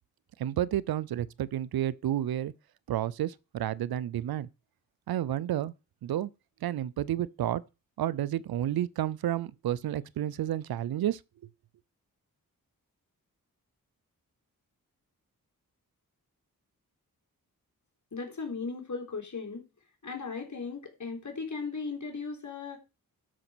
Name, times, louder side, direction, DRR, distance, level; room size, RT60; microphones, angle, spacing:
voice 1, 0.4-2.5 2.9-4.5 5.1-5.7 6.0-6.3 6.6-7.6 8.0-11.2, right 12 dB, 85° right, 0.6 m, -30 dB
voice 2, 18.1-19.7 20.0-22.8, left 4 dB, 55° left, 3.8 m, -37 dB
12.5 x 5.1 x 6.2 m
cardioid pair, 45°, 36 cm